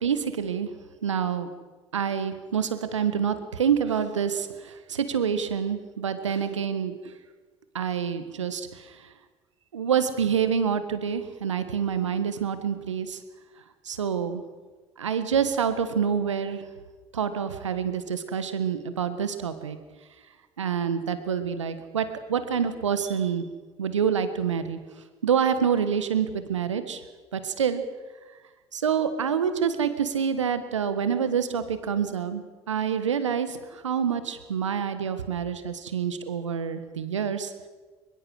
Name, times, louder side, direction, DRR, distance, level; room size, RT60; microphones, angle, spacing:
voice 1, 0.0-0.7 1.0-1.5 1.9-6.9 7.7-8.7 9.7-13.2 13.9-14.4 15.0-16.6 17.1-19.8 20.6-23.4 23.8-24.8 25.2-27.0 27.3-27.8 28.7-37.5, right 7 dB, 90° right, 11 dB, 1.5 m, -27 dB
23.0 x 22.0 x 6.5 m, 1.3 s
hypercardioid pair, 55°, 15 cm